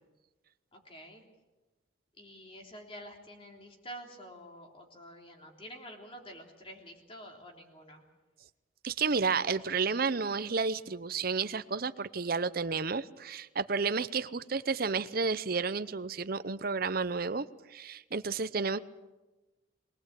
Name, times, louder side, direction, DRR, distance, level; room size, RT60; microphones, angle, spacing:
voice 1, 0.7-1.2 2.2-8.0, equal, 25° left, 2 dB, 3.4 m, -48 dB
voice 2, 8.8-18.8, right 4 dB, 45° right, 13 dB, 0.7 m, -31 dB
23.0 x 18.5 x 8.3 m, 1.1 s
head